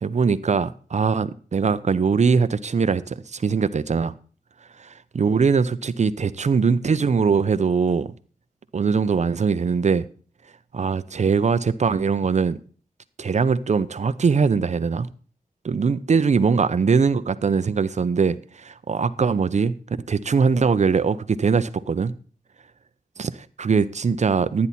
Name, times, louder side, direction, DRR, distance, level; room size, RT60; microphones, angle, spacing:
voice 1, 0.0-4.1 4.8-8.1 8.7-10.0 10.7-12.6 13.2-15.1 15.6-19.7 20.1-22.1 23.2-24.7, right 5 dB, 50° right, 0.6 m, -21 dB
12.5 x 9.6 x 4.2 m
wide cardioid pair, 130°, 15 cm